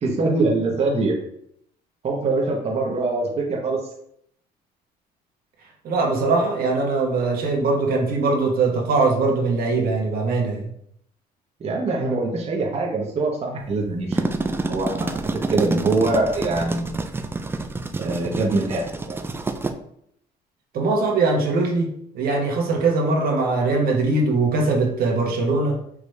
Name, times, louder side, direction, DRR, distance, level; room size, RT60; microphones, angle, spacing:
voice 1, 0.0-1.2 2.0-3.8 11.6-15.2 15.5-17.0 18.0-19.2, right 3 dB, 35° right, -1 dB, 0.9 m, -23 dB
voice 2, 5.8-10.7 20.7-21.9 22.1-25.8, right 3 dB, 60° right, 0 dB, 1.0 m, -21 dB
sound 1, 13.9-19.7, right 3 dB, 15° right, 0.3 m, -28 dB
4.8 x 2.5 x 3.2 m, 0.70 s
cardioid pair, 110°, 17 cm